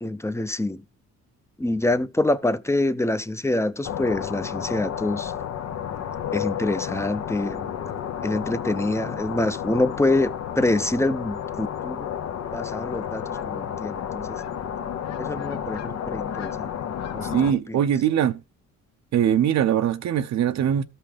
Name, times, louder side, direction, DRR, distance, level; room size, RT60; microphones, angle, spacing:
voice 1, 0.0-0.8 1.6-5.3 6.3-7.7 8.2-12.1 12.5-14.4 15.2-16.7 17.1-17.8, left 2 dB, 10° left, 0.6 m, -26 dB
sound 1, 3.8-17.5, left 9 dB, 60° left, 0.8 m, -31 dB
voice 2, 17.3-18.4 19.1-20.8, right 9 dB, 65° right, 0.7 m, -21 dB
13.5 x 5.6 x 3.3 m
cardioid pair, 90°, 30 cm